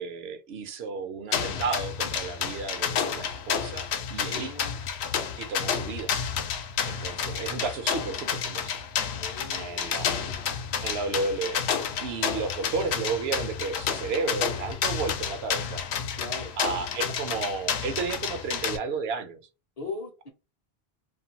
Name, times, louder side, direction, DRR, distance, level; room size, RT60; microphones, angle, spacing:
voice 1, 0.0-4.5 5.4-6.1 6.9-8.7 9.5-10.2 10.8-11.6 12.0-15.8 16.6-19.4, right 4 dB, 80° right, 0.8 m, -32 dB
sound 1, 1.3-18.8, left 7 dB, 90° left, 0.8 m, -30 dB
voice 2, 3.0-3.3 4.3-4.8 5.6-6.0 9.2-10.4 16.2-16.6 19.8-20.3, left 3 dB, 45° left, 0.6 m, -40 dB
2.5 x 2.2 x 2.7 m
omnidirectional pair, 1.1 m